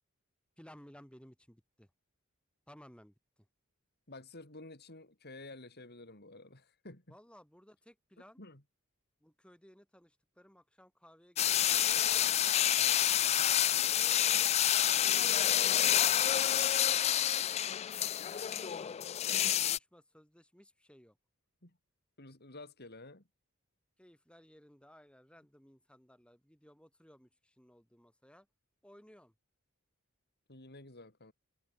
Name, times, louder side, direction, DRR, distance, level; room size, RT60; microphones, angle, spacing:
voice 1, 0.6-1.9 2.7-3.1 7.1-8.4 9.2-12.2 12.9-14.0 14.4-15.9 16.3-19.2 19.6-21.2 24.0-28.5 28.8-29.3, equal, 5° left, 8.0 m, -59 dB
voice 2, 4.1-7.2 8.4-8.6 12.8-13.0 21.6-21.8 22.2-23.2 30.5-31.3, left 2 dB, 50° left, 4.8 m, -51 dB
sound 1, 11.4-19.8, left 11 dB, 30° left, 0.3 m, -28 dB
head